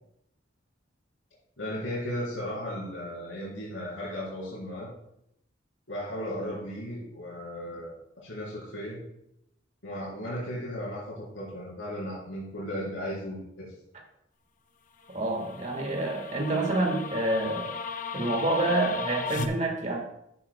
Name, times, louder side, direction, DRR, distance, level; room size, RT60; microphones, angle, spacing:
voice 1, 1.6-4.9 5.9-8.0 8.2-9.0 9.8-13.7, equal, 80° left, -7 dB, 3.6 m, -35 dB
sound 1, 15.0-19.5, left 4 dB, 45° left, 0.6 m, -36 dB
voice 2, 15.1-17.7 18.1-20.0, right 2 dB, 40° right, 2 dB, 1.6 m, -28 dB
13.0 x 7.4 x 2.2 m, 0.79 s
head